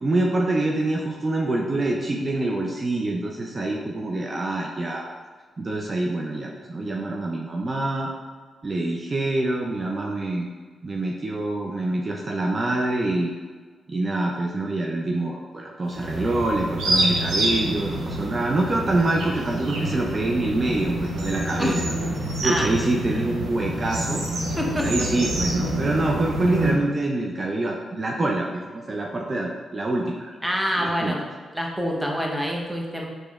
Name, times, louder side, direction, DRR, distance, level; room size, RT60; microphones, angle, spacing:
voice 1, 0.0-5.1 5.6-8.1 8.6-10.5 10.8-13.3 13.9-21.8 22.4-24.2 24.8-30.4 30.8-31.2, right 2 dB, 40° right, -1 dB, 0.5 m, -25 dB
sound 1, 15.9-26.7, right 1 dB, 85° right, 0.7 m, -27 dB
voice 2, 24.6-25.1 30.4-31.2 31.5-33.1, equal, 5° right, -1 dB, 0.9 m, -26 dB
4.8 x 3.0 x 2.4 m, 1.5 s
supercardioid pair, 45°, 0 cm